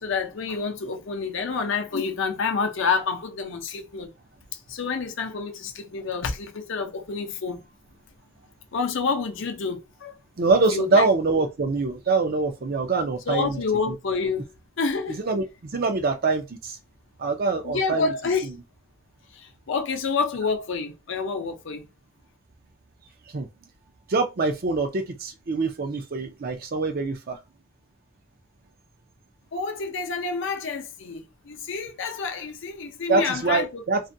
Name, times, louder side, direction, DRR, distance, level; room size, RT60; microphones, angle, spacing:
voice 1, 0.0-4.1 4.7-7.6 8.7-10.2 10.7-11.1 13.3-14.4 14.8-15.2 17.6-18.5 19.3-21.8 29.5-33.8, left 4 dB, 60° left, 0.5 m, -28 dB
voice 2, 10.4-13.6 13.9-14.0 15.1-16.8 17.2-18.1 18.4-18.6 23.3-23.5 24.1-27.4 33.1-34.0, right 3 dB, 45° right, 0.5 m, -24 dB
2.4 x 2.1 x 2.6 m
head